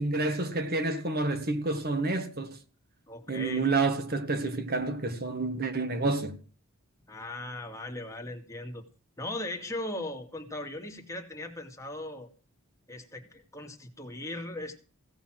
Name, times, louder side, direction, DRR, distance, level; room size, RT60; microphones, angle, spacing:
voice 1, 0.0-2.6 3.3-6.4, right 3 dB, 45° right, 1.7 m, -29 dB
voice 2, 3.1-3.6 7.1-8.8 9.2-12.3 12.9-14.8, left 1 dB, 15° left, 2.1 m, -38 dB
16.5 x 7.0 x 7.7 m
head